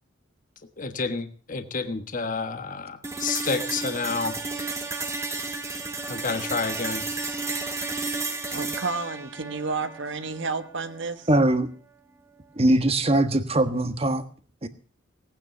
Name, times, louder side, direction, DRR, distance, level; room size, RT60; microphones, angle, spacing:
voice 1, 0.8-4.3 6.1-7.0, left 4 dB, 40° left, 9 dB, 1.4 m, -29 dB
sound 1, 3.0-11.0, right 3 dB, 15° right, 1.8 m, -32 dB
voice 2, 8.5-11.3, right 4 dB, 65° right, 9 dB, 1.5 m, -31 dB
voice 3, 11.3-11.7 12.6-14.2 14.6-14.7, right 1 dB, 30° right, 10 dB, 1.4 m, -21 dB
18.5 x 9.3 x 7.0 m, 0.40 s
head